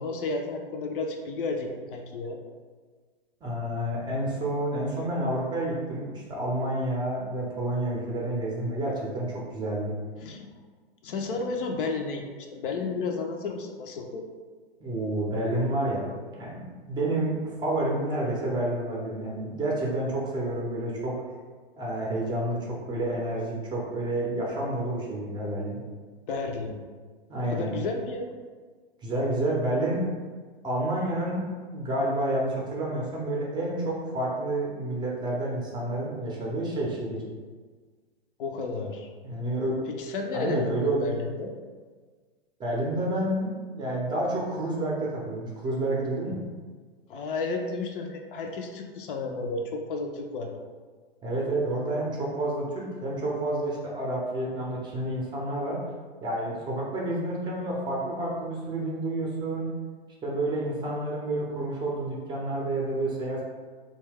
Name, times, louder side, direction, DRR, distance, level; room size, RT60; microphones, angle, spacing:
voice 1, 0.0-2.4 10.2-10.5 11.0-14.2 26.3-26.8 27.4-28.4 38.4-39.1 40.0-41.5 47.1-50.5, left 3 dB, 60° left, 3 dB, 0.5 m, -32 dB
voice 2, 3.4-9.9 14.8-21.1 21.8-25.8 27.3-27.7 29.0-30.0 30.6-31.4 31.7-37.2 39.2-39.7 40.3-41.3 42.6-46.4 51.2-55.8 56.2-59.7 60.2-63.4, right 1 dB, 15° right, -4 dB, 0.5 m, -29 dB
2.7 x 2.2 x 3.4 m, 1.5 s
hypercardioid pair, 115°, 30 cm